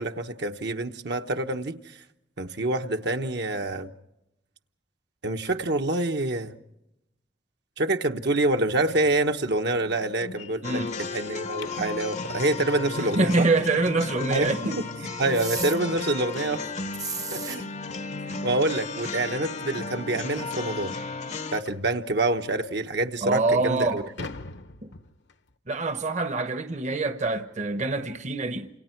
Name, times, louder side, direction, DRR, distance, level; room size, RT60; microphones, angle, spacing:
voice 1, 0.0-1.8 2.4-3.9 5.2-6.5 7.8-10.8 11.1-13.5 14.3-16.7 17.3-17.7 18.4-21.0 21.5-24.0, right 2 dB, 65° right, 1.1 m, -26 dB
sound 1, 8.9-12.0 14.9-15.0 15.4-15.6 16.0-16.1 16.6-16.7 17.8-17.9 18.3-18.4 19.1-19.2 19.5-19.6 20.1-20.2 21.7-22.0 22.7-22.8 23.3-25.6, left 3 dB, 70° left, 1.1 m, -45 dB
sound 2, 10.6-21.6, left 4 dB, 40° left, 0.8 m, -34 dB
voice 2, 10.6-11.0 11.8-11.9 13.0-14.8 23.2-24.0 25.7-28.7, right 3 dB, 40° right, 1.0 m, -25 dB
sound 3, 15.3-15.8 16.9-17.6, right 5 dB, 20° right, 0.8 m, -33 dB
29.0 x 28.0 x 4.6 m
head